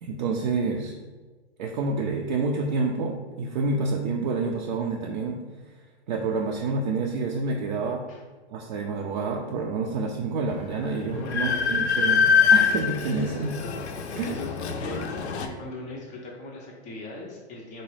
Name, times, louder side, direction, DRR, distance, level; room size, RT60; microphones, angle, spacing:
voice 1, 0.0-0.9 1.6-5.4 6.1-8.0 8.5-13.6 14.1-14.3, right 3 dB, 45° right, 0 dB, 0.4 m, -28 dB
Train, 10.5-10.6 10.9-15.5, left 6 dB, 75° left, 0.5 m, -24 dB
voice 2, 11.1-11.8 14.2-17.8, left 2 dB, 20° left, -1 dB, 0.5 m, -39 dB
3.9 x 2.2 x 3.2 m, 1.3 s
hypercardioid pair, 120°, 34 cm